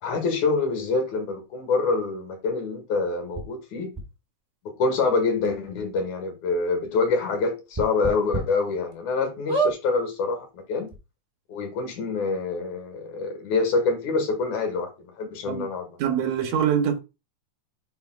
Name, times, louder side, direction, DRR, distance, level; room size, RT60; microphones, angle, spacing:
voice 1, 0.0-3.9 4.8-10.9 11.5-15.9, left 4 dB, 75° left, 2.8 m, -26 dB
sound 1, 3.3-3.4 3.9-4.0 5.0-5.1 5.4-5.5 6.0-6.1 7.7-8.4 8.9-9.0 9.5-9.8 10.6-10.7 10.9-11.0, right 3 dB, 25° right, 0.6 m, -26 dB
voice 2, 16.0-17.0, right 8 dB, 75° right, 2.1 m, -24 dB
9.3 x 4.5 x 2.3 m
omnidirectional pair, 3.4 m